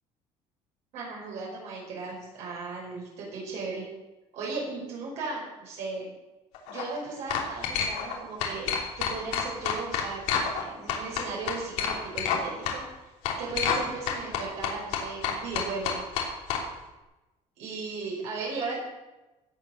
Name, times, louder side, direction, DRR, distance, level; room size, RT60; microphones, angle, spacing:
voice 1, 0.9-3.9 4.3-6.1 6.7-8.7 9.0-12.8 13.4-16.0 17.6-18.8, right 3 dB, 65° right, -4 dB, 5.6 m, -36 dB
sound 1, 6.5-6.8 7.3-8.1 8.4-10.6 10.9-12.4 12.6-12.8 13.2-13.8 14.1-16.6, left 7 dB, 90° left, 3.0 m, -28 dB
16.0 x 7.8 x 6.7 m, 1.0 s
cardioid pair, 150°, 12 cm